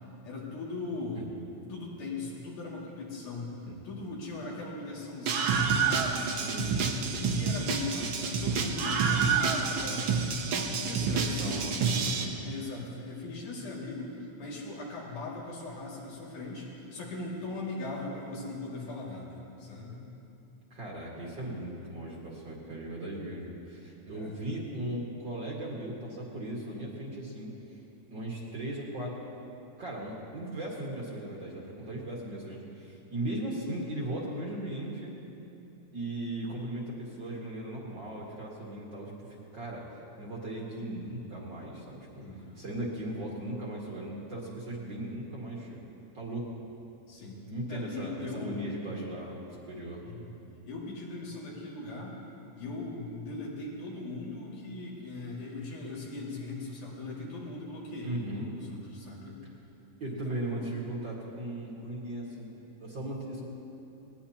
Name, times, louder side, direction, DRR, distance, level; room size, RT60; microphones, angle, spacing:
voice 1, 0.2-1.3 1.7-6.2 7.2-10.3 10.5-11.7 12.2-20.0 24.1-24.4 42.2-42.5 47.1-47.4 47.7-48.8 50.0-50.3 50.7-52.2 52.5-59.4 60.0-60.7, left 2 dB, 80° left, -5 dB, 3.9 m, -39 dB
Screaming, 5.3-12.2, right 5 dB, 70° right, 1.2 m, -28 dB
voice 2, 6.4-7.0 11.1-12.3 20.7-27.8 28.1-29.2 29.8-35.1 35.9-39.8 40.2-42.2 42.6-45.8 46.1-46.5 47.5-50.0 58.0-58.5 60.0-62.5 62.8-63.4, right 1 dB, 40° right, -4 dB, 2.2 m, -37 dB
19.5 x 18.5 x 2.9 m, 2.9 s
omnidirectional pair, 3.5 m